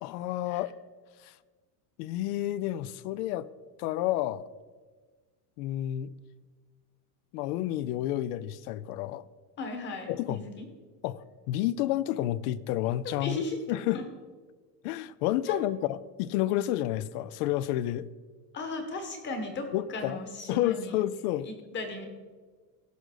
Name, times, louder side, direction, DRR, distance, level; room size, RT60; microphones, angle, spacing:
voice 1, 0.0-0.7 1.2-1.3 2.0-3.5 3.8-4.5 5.6-6.1 7.3-9.2 10.1-10.4 11.0-13.4 13.7-14.0 14.8-18.1 19.7-20.2 20.5-21.5, left 14 dB, 70° left, 19 dB, 0.6 m, -30 dB
voice 2, 9.6-10.7 13.0-13.6 13.9-14.0 15.5-15.6 18.5-21.0 21.4-22.1, left 3 dB, 25° left, 5 dB, 1.3 m, -36 dB
16.0 x 6.6 x 3.9 m, 1.4 s
cardioid pair, 170°, 47 cm